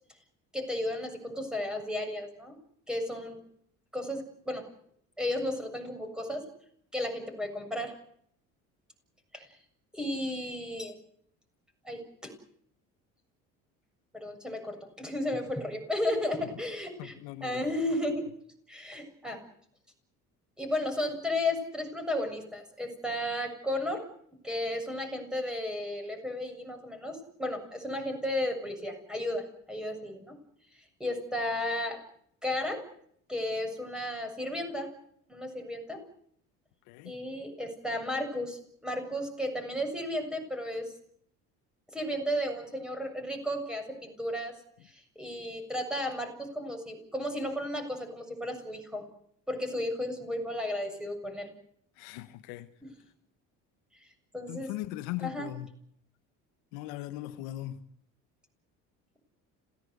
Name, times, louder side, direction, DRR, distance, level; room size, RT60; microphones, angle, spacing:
voice 1, 0.5-2.6 2.9-3.4 3.9-4.6 5.2-6.4 6.9-7.9 9.3-9.5 9.9-10.9 11.8-12.3 14.1-17.2 17.4-18.3 18.7-19.4 20.6-24.0 24.4-30.4 31.0-32.0 32.4-32.8 33.3-34.9 35.3-36.0 37.0-40.9 41.9-44.5 44.8-49.0 49.5-51.5 52.8-52.9 54.3-54.7 55.2-55.5, left 1 dB, ahead, 7.4 m, -33 dB
voice 2, 17.0-17.6 36.9-37.1 52.0-52.7 54.5-55.7 56.7-57.8, left 15 dB, 90° left, 1.3 m, -39 dB
27.0 x 17.0 x 8.1 m
supercardioid pair, 95°, 32 cm